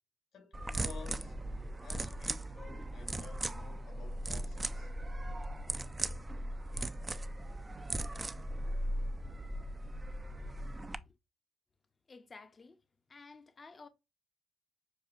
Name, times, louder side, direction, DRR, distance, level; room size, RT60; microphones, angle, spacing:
voice 1, 0.3-1.4 1.8-4.9, left 5 dB, 65° left, 1.8 m, -52 dB
sound 1, 0.5-11.0, right 1 dB, 20° right, 0.3 m, -38 dB
voice 2, 12.1-12.8 13.1-13.9, left 4 dB, 30° left, 0.6 m, -53 dB
6.1 x 2.4 x 2.4 m
cardioid pair, 85°, 0 cm